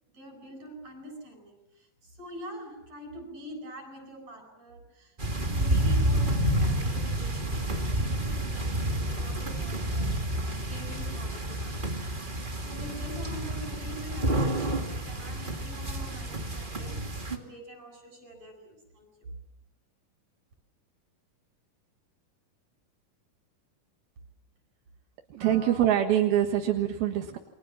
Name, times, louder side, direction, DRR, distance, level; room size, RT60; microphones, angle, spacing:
voice 1, 0.1-19.4 25.4-25.9, equal, 45° right, 3 dB, 9.3 m, -45 dB
sound 1, 5.2-17.4, right 1 dB, 20° right, 1.6 m, -29 dB
voice 2, 25.3-27.4, right 11 dB, 85° right, 3 dB, 3.5 m, -24 dB
29.0 x 24.0 x 7.4 m, 0.82 s
omnidirectional pair, 4.2 m